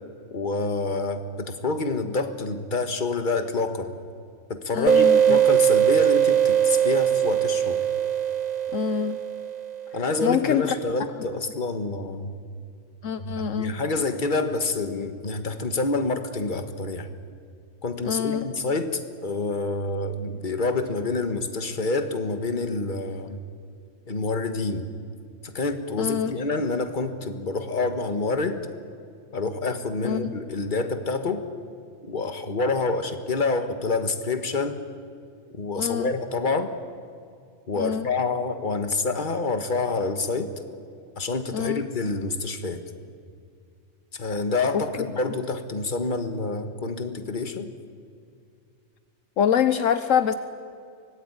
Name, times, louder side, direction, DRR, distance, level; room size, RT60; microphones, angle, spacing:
voice 1, 0.3-3.9 4.5-7.8 9.9-12.4 13.2-17.1 17.8-23.4 24.1-24.9 25.4-28.6 29.3-31.5 32.1-34.8 35.5-36.7 37.7-40.5 41.2-42.8 44.1-47.7, left 3 dB, 35° left, 8 dB, 1.6 m, -27 dB
voice 2, 4.7-5.4 8.7-9.2 10.2-10.8 13.0-13.7 18.1-18.5 26.0-26.3 30.0-30.3 35.8-36.1 37.8-38.1 41.5-41.8 44.7-44.8 49.4-50.3, left 8 dB, 70° left, 11 dB, 1.2 m, -25 dB
sound 1, 4.9-10.2, right 9 dB, 40° right, 0.8 m, -21 dB
24.5 x 19.0 x 9.7 m, 2.4 s
omnidirectional pair, 1.4 m